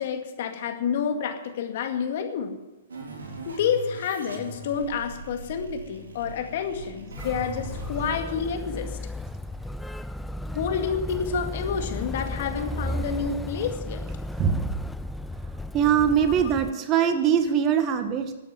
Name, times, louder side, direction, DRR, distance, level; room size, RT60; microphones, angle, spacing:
voice 1, 0.0-2.5 3.5-8.9 10.5-14.0 16.2-16.3 17.0-17.1, left 6 dB, 60° left, 6 dB, 2.1 m, -29 dB
sound 1, 2.9-8.1, right 3 dB, 80° right, 3.9 m, -41 dB
Motor vehicle (road), 7.2-16.7, left 1 dB, 5° left, 0.4 m, -34 dB
voice 2, 14.4-14.8 15.7-18.3, right 8 dB, 30° right, 8 dB, 1.5 m, -22 dB
12.5 x 8.8 x 9.1 m, 1.0 s
hypercardioid pair, 125°, 0 cm